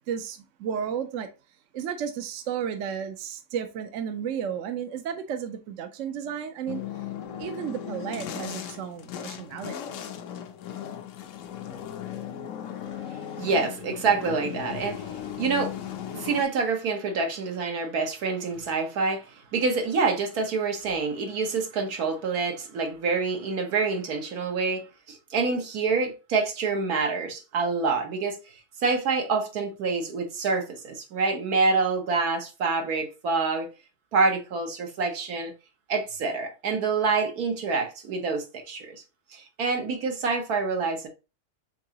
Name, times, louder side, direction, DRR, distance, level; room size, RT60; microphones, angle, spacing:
voice 1, 0.1-1.3 1.7-6.8 7.4-10.0, right 8 dB, 65° right, 0.9 m, -33 dB
sound 1, 6.7-16.4, left 9 dB, 65° left, 0.9 m, -37 dB
voice 2, 13.4-15.1 15.4-15.8 16.1-28.4 28.8-33.7 34.1-35.5 35.9-39.0 39.3-41.1, right 4 dB, 80° right, 1.5 m, -27 dB
4.6 x 3.6 x 2.9 m
omnidirectional pair, 1.6 m